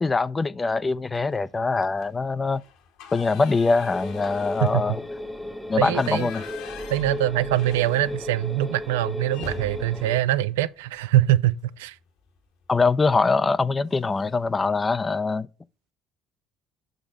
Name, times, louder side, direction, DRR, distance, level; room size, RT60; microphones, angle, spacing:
voice 1, 0.0-2.6 3.1-5.0 5.7-6.4 12.7-15.5, left 4 dB, 25° left, 0.5 m, -23 dB
sound 1, 1.1-1.5 1.9-2.1 2.4-8.5 8.8-8.9 9.3-11.4 12.8-13.0 13.4-13.6 13.9-14.5, left 6 dB, 65° left, 1.4 m, -43 dB
sound 2, 3.9-10.2, left 1 dB, 5° right, 1.0 m, -35 dB
voice 2, 5.8-6.3 6.9-12.0, right 14 dB, 75° right, 0.4 m, -23 dB
6.0 x 5.1 x 6.5 m
figure-of-eight pair, 55°, 0 cm